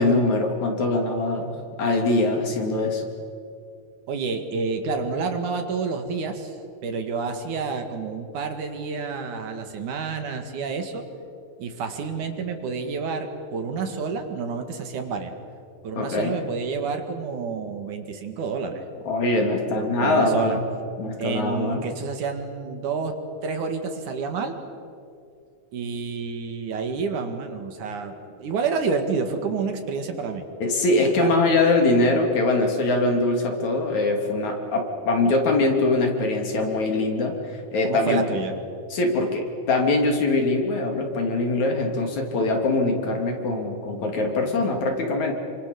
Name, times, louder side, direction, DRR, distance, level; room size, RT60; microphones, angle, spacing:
voice 1, 0.0-3.0 16.0-16.3 19.1-20.6 21.0-21.8 30.6-37.3 37.7-38.2 38.9-45.3, left 2 dB, 60° left, 2 dB, 4.1 m, -22 dB
voice 2, 4.1-6.6 6.8-11.0 11.6-15.3 15.8-18.8 19.7-20.6 21.2-23.1 23.4-24.6 25.7-30.4 31.2-31.3 37.8-38.5, right 5 dB, 65° right, 6 dB, 3.3 m, -29 dB
28.0 x 25.5 x 7.0 m, 2.4 s
omnidirectional pair, 3.8 m